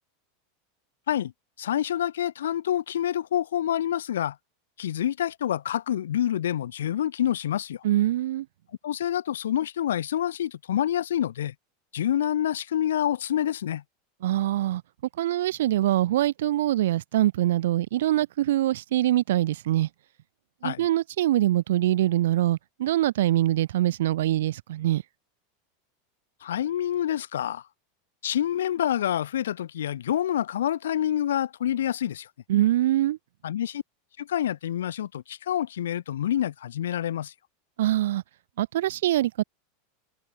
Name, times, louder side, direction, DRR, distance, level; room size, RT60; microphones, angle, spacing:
voice 1, 1.6-4.4 4.8-7.8 8.8-11.5 11.9-13.8 20.6-20.8 26.4-27.6 28.2-32.3 33.4-33.8 34.2-37.3, left 11 dB, 75° left, 6.2 m, -27 dB
voice 2, 7.8-8.5 14.2-14.8 15.2-19.9 20.6-25.0 32.5-33.2 37.8-38.2 38.6-39.4, right 14 dB, 70° right, 2.4 m, -24 dB
hypercardioid pair, 90°, 0 cm